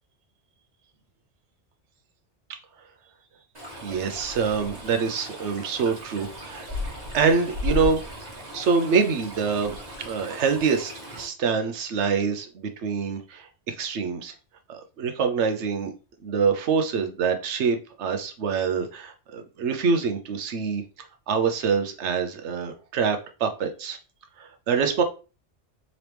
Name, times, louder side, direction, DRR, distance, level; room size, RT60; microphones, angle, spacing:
Stream, 3.5-11.2, left 2 dB, 35° right, 1.5 m, -36 dB
voice 1, 3.8-6.7 7.1-8.0 8.5-10.9 11.2-14.3 14.7-15.9 16.2-20.8 21.3-24.0 24.4-25.0, right 5 dB, 75° right, 6 dB, 1.0 m, -25 dB
3.9 x 3.0 x 3.3 m, 0.33 s
omnidirectional pair, 1.2 m